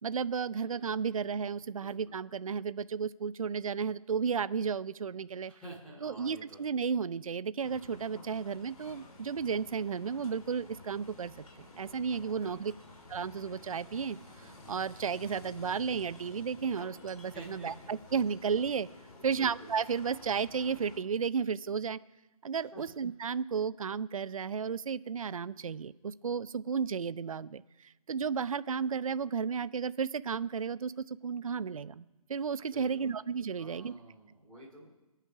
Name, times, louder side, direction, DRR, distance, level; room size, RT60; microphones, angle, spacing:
voice 1, 0.0-5.5 6.0-11.3 11.8-12.7 13.1-18.9 19.2-22.0 22.4-32.0 32.3-33.9, right 6 dB, 65° right, 16 dB, 0.6 m, -33 dB
voice 2, 0.6-2.2 5.5-6.7 12.2-12.7 17.2-18.0 19.1-19.7 22.7-22.8 32.7-33.1 33.6-34.9, right 2 dB, 5° left, -9 dB, 2.8 m, -50 dB
sound 1, 7.6-21.0, left 2 dB, 70° left, 3.7 m, -52 dB
22.0 x 9.0 x 6.0 m, 1.1 s
figure-of-eight pair, 160°, 19 cm